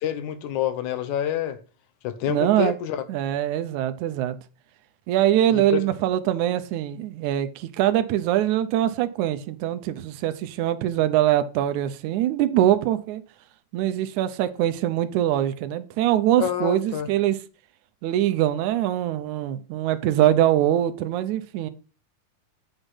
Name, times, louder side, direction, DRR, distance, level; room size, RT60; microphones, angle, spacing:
voice 1, 0.0-1.6 2.0-3.0 5.5-5.8 16.4-17.1, left 10 dB, 80° left, 2.2 m, -27 dB
voice 2, 2.3-2.7 3.1-4.4 5.1-13.2 13.7-17.4 18.0-21.7, right 12 dB, 85° right, 2.1 m, -23 dB
8.2 x 5.3 x 5.6 m
omnidirectional pair, 3.4 m